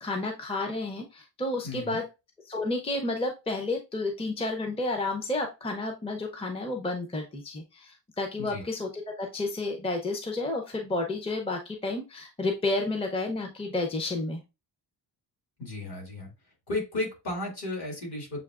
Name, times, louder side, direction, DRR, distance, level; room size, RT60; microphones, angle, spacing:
voice 1, 0.0-2.0 2.5-14.4, left 2 dB, 15° left, 3 dB, 0.6 m, -31 dB
voice 2, 1.6-2.0 8.4-8.6 15.6-16.3 16.7-18.4, left 2 dB, 60° left, 0 dB, 2.3 m, -34 dB
7.0 x 2.8 x 2.4 m, 0.26 s
wide cardioid pair, 145°, 44 cm